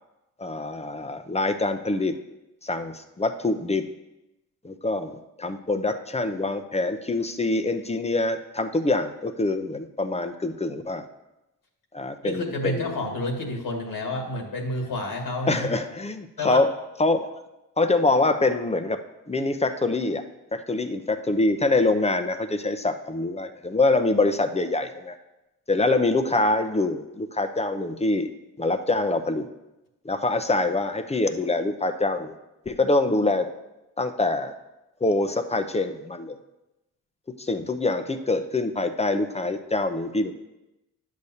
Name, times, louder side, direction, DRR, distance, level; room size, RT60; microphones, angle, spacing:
voice 1, 0.4-2.2 2.6-3.9 4.6-11.1 11.9-13.1 15.4-16.7 17.0-17.2 17.8-19.0 19.3-20.2 20.5-25.2 25.7-28.3 28.6-29.5 30.0-32.3 32.7-33.5 34.0-34.5 35.0-36.4 37.4-40.3, left 2 dB, 20° left, 8 dB, 0.6 m, -25 dB
voice 2, 12.2-15.7 16.4-16.6, left 2 dB, 70° left, 2 dB, 1.6 m, -29 dB
10.5 x 6.6 x 2.8 m, 0.97 s
cardioid pair, 65°, 36 cm